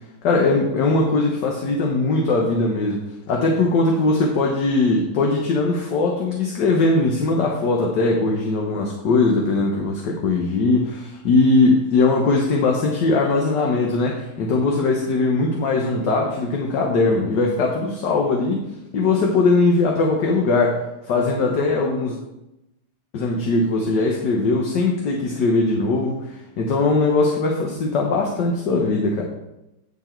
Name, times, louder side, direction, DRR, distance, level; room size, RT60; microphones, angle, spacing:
voice 1, 0.2-18.6 18.9-22.2 23.1-29.2, left 3 dB, 60° left, 0 dB, 1.6 m, -20 dB
10.0 x 6.3 x 4.4 m, 0.92 s
omnidirectional pair, 2.2 m